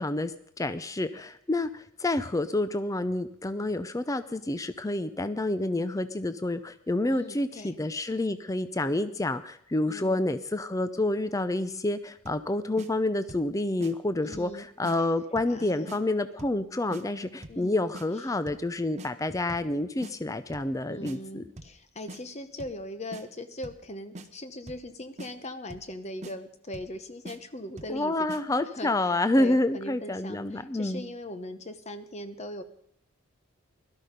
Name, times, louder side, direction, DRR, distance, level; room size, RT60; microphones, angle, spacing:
voice 1, 0.0-21.4 27.9-31.0, left 2 dB, 15° left, 13 dB, 0.5 m, -28 dB
voice 2, 7.1-7.7 9.9-10.2 14.2-14.7 15.5-16.2 17.5-17.9 20.8-28.3 28.8-28.9 29.4-32.6, left 1 dB, 30° left, 10 dB, 0.9 m, -40 dB
sound 1, 12.2-12.5 12.8-12.9 13.3-13.5 13.8-13.9 14.3-14.5 14.8-15.0 15.4-15.6 15.9-16.0 16.4-16.6 16.9-17.0 17.4-17.6 17.9-18.1 18.5-18.7 19.0-19.1 19.5-19.7 20.0-20.1 20.5-20.7 21.0-21.2 21.6-21.8 22.1-22.2 22.6-22.8 23.1-23.2 23.6-23.9 24.1-24.3 24.7-24.9 25.2-25.3 25.7-25.9 26.2-26.3 26.7-27.0 27.2-27.4 27.8-28.0 28.3-28.4, right 1 dB, 30° right, 0.8 m, -43 dB
17.5 x 12.5 x 5.2 m, 0.66 s
head